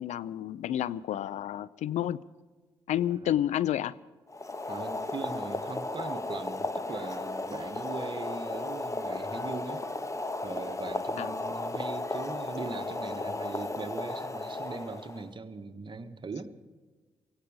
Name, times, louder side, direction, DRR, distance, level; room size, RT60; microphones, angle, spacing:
voice 1, 0.0-2.2 2.9-3.9 11.2-11.3, left 11 dB, 75° left, 20 dB, 0.5 m, -30 dB
Boiling, 4.3-15.3, left 2 dB, 25° left, 1.4 m, -35 dB
voice 2, 4.7-9.9 10.4-16.5, right 4 dB, 40° right, 8 dB, 1.5 m, -40 dB
17.0 x 16.5 x 5.1 m, 1.3 s
hypercardioid pair, 45°, 12 cm